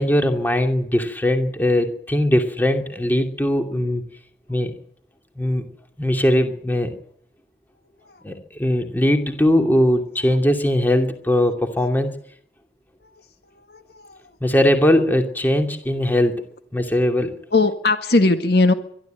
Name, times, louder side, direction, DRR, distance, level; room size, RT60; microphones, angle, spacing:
voice 1, 0.0-4.0 4.5-4.7 5.4-5.7 6.0-6.9 8.2-12.1 14.4-16.3 16.7-17.3, left 1 dB, 10° left, 5 dB, 2.6 m, -20 dB
voice 2, 13.7-14.2 17.5-18.7, left 3 dB, 65° left, 8 dB, 1.7 m, -18 dB
23.5 x 12.5 x 9.1 m, 0.66 s
head